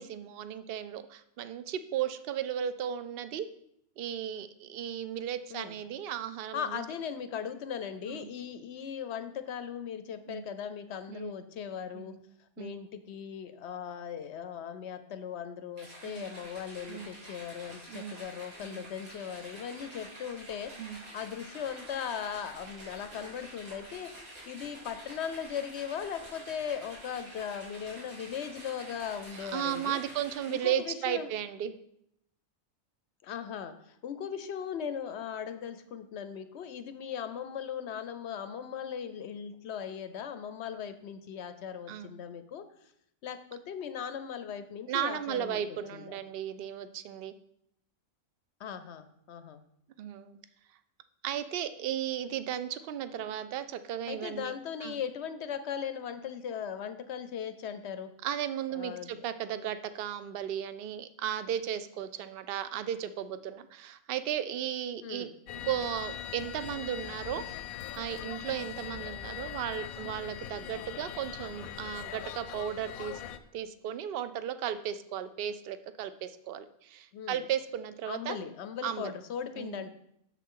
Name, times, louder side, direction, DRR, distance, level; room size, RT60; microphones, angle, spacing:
voice 1, 0.0-3.5 4.0-6.8 8.1-8.3 10.3-10.5 11.1-11.4 11.9-12.2 12.6-12.8 16.0-16.3 16.9-17.1 17.9-18.2 18.6-18.8 20.8-21.0 29.4-31.7 41.9-42.1 44.9-47.3 50.0-50.4 51.2-54.5 54.8-55.0 58.2-65.3 65.6-67.4 68.0-73.2 73.5-78.5 78.8-79.1 79.6-79.8, right 10 dB, 65° right, 12 dB, 0.6 m, -35 dB
voice 2, 6.5-12.1 12.6-30.0 30.5-31.3 33.2-42.6 43.2-46.2 48.6-49.6 54.1-58.1 58.7-59.1 65.0-65.3 77.1-77.5 78.1-79.9, left 8 dB, 65° left, 11 dB, 0.7 m, -38 dB
sound 1, 15.8-30.9, right 1 dB, 85° right, 3.2 m, -48 dB
sound 2, 65.5-73.4, left 10 dB, 90° left, 1.1 m, -41 dB
8.3 x 7.0 x 3.7 m, 0.74 s
omnidirectional pair, 1.4 m